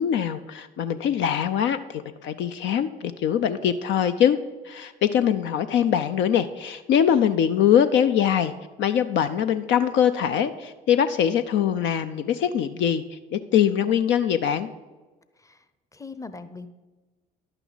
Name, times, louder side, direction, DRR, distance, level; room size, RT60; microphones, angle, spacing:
voice 1, 0.0-4.4 4.6-8.5 8.8-14.7, left 9 dB, 60° left, 10 dB, 0.5 m, -23 dB
voice 2, 15.9-16.7, left 3 dB, 15° left, 12 dB, 0.7 m, -40 dB
11.0 x 8.9 x 4.0 m, 1.3 s
hypercardioid pair, 55°, 21 cm